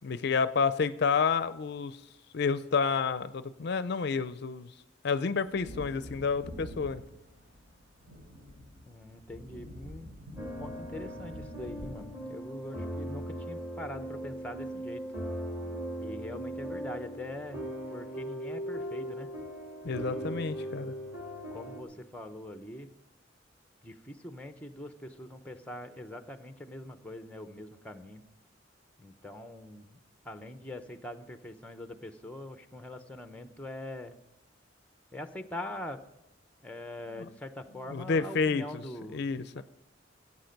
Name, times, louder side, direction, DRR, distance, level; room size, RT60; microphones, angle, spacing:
voice 1, 0.0-2.0 2.3-4.7 5.0-7.0 19.8-20.9 37.2-37.3 37.9-38.8 39.1-39.6, left 5 dB, 60° left, 13 dB, 0.5 m, -29 dB
Wind / Thunder, 5.4-13.7 14.0-14.1, left 1 dB, 80° right, 4.6 m, -47 dB
voice 2, 8.9-10.1 10.6-15.0 16.0-17.6 17.9-19.3 19.8-20.5 21.5-22.9 23.8-28.2 29.0-30.0 30.2-34.2 35.1-36.0 36.6-39.3 39.6-39.7, left 1 dB, 5° left, 8 dB, 0.7 m, -43 dB
sound 1, 10.4-21.8, equal, 10° right, 2.6 m, -39 dB
16.0 x 8.4 x 5.2 m, 0.88 s
head